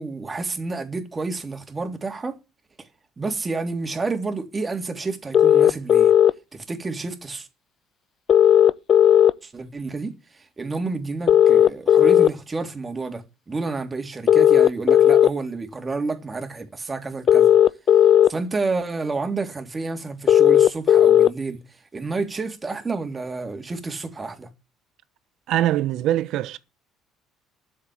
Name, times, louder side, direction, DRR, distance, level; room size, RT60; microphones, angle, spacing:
voice 1, 0.0-2.4 3.2-6.1 6.5-7.5 9.4-17.6 18.3-21.6 21.9-24.5, right 3 dB, 25° right, 3.3 m, -30 dB
sound 1, 5.3-6.3 8.3-9.3 11.3-12.3 14.3-15.3 17.3-18.3 20.3-21.3, left 10 dB, 50° left, 0.7 m, -14 dB
voice 2, 25.5-26.6, right 13 dB, 65° right, 1.1 m, -22 dB
12.5 x 7.6 x 8.7 m
hypercardioid pair, 55°, 0 cm